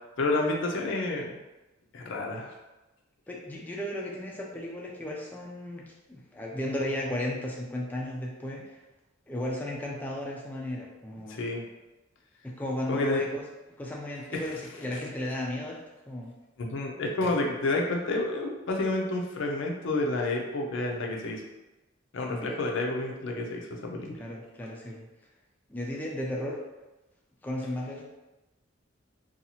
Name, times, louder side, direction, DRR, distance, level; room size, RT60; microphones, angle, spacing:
voice 1, 0.2-1.4 1.9-2.5 11.3-11.6 12.9-13.2 14.3-14.4 16.6-21.4 22.1-24.1, left 2 dB, 70° left, 1 dB, 0.5 m, -29 dB
voice 2, 3.3-8.8 9.3-11.4 12.4-13.4 13.8-15.8 16.1-16.3 22.3-22.5 24.2-25.1 25.7-26.6 27.4-28.0, left 1 dB, 10° left, -3 dB, 0.3 m, -35 dB
2.7 x 2.3 x 2.7 m, 1.0 s
head